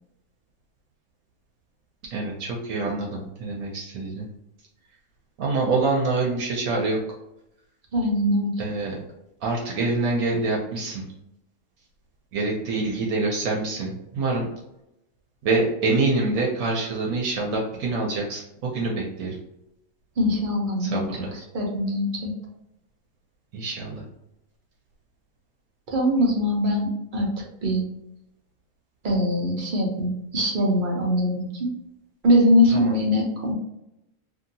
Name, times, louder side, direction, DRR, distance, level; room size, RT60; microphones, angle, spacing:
voice 1, 2.1-4.3 5.4-7.0 8.6-9.0 9.4-11.0 12.3-14.5 15.4-19.4 20.8-21.3 23.5-24.0 32.7-33.0, right 3 dB, 75° right, -2 dB, 1.1 m, -26 dB
voice 2, 7.9-8.5 20.2-21.1 21.5-22.3 25.9-27.3 27.6-27.8 29.0-31.7 32.2-33.5, equal, 45° right, -1 dB, 0.7 m, -22 dB
2.8 x 2.7 x 2.6 m, 0.86 s
omnidirectional pair, 1.5 m